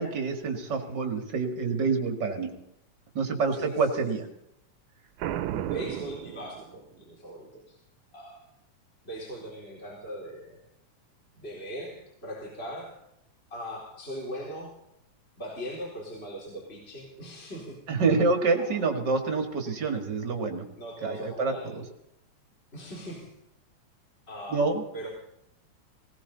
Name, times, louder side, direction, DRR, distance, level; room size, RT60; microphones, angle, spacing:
voice 1, 0.0-2.5 3.2-4.3 17.9-20.6 21.0-21.8 24.5-24.8, right 4 dB, 40° right, 4 dB, 2.1 m, -27 dB
voice 2, 3.5-3.9 5.6-7.8 8.1-8.4 9.0-10.6 11.4-13.0 13.5-14.7 15.4-17.8 18.6-18.8 20.8-21.8 22.7-23.3 24.3-24.7 24.9-25.1, equal, 20° left, -3 dB, 4.0 m, -40 dB
Boom, 5.2-7.0, right 11 dB, 85° right, 2.2 m, -33 dB
19.0 x 18.0 x 4.0 m, 0.81 s
omnidirectional pair, 3.4 m